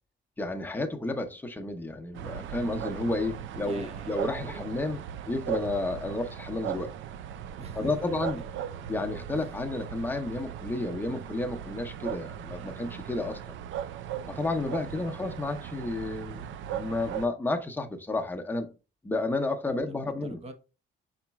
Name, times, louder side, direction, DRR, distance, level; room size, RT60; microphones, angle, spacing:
voice 1, 0.4-5.0 5.3-6.9 7.7-8.4 8.9-13.6 14.3-18.7 19.0-20.4, left 2 dB, 10° left, 0.8 m, -31 dB
sound 1, 2.1-17.3, right 10 dB, 75° right, 0.4 m, -38 dB
voice 2, 3.6-4.7 7.6-8.9 9.3-9.5 12.4-12.8 14.5-15.2 19.7-20.5, right 2 dB, 30° right, 0.9 m, -47 dB
5.0 x 4.1 x 2.3 m
cardioid pair, 90°, 20 cm